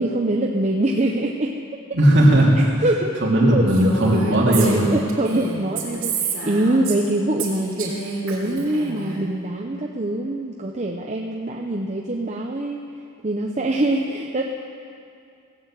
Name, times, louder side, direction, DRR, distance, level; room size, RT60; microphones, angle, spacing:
voice 1, 0.0-1.5 2.8-3.1 3.5-3.7 4.5-12.8 13.2-14.4, right 1 dB, 35° right, 0 dB, 0.8 m, -24 dB
voice 2, 1.9-2.7 3.2-4.9, right 1 dB, 55° right, -4 dB, 3.1 m, -16 dB
Female speech woman speaking, 3.7-7.1 7.4-9.2, right 4 dB, 80° right, 3.1 m, -29 dB
17.5 x 8.6 x 7.6 m, 2.4 s
head